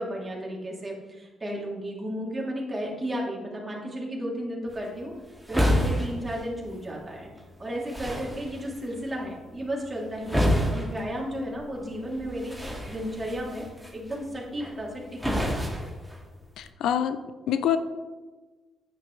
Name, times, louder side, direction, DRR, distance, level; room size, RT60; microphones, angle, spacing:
voice 1, 0.0-5.1 5.5-7.3 7.6-13.7 13.9-15.9, equal, 20° right, -3 dB, 3.2 m, -34 dB
sound 1, 4.7-16.7, equal, ahead, 2.4 m, -31 dB
voice 2, 16.6-17.2 17.5-17.8, left 9 dB, 80° left, 11 dB, 0.6 m, -25 dB
9.7 x 9.5 x 3.4 m, 1.3 s
cardioid pair, 90°, 0 cm